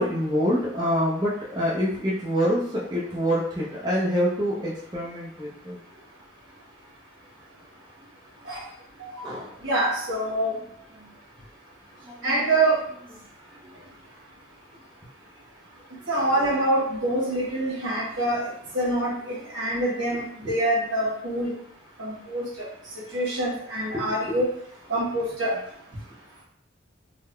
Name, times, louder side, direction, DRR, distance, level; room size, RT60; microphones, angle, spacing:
voice 1, 0.0-5.8 9.2-9.5 11.0-11.1 12.0-12.4 20.4-20.5 23.9-24.1, equal, 20° right, -7 dB, 0.6 m, -26 dB
voice 2, 9.6-10.5 12.2-12.8 16.1-18.5 18.7-21.5 22.0-22.7 23.1-24.5 24.9-25.6, right 1 dB, 80° right, -5 dB, 1.4 m, -25 dB
3.8 x 2.2 x 3.2 m, 0.69 s
head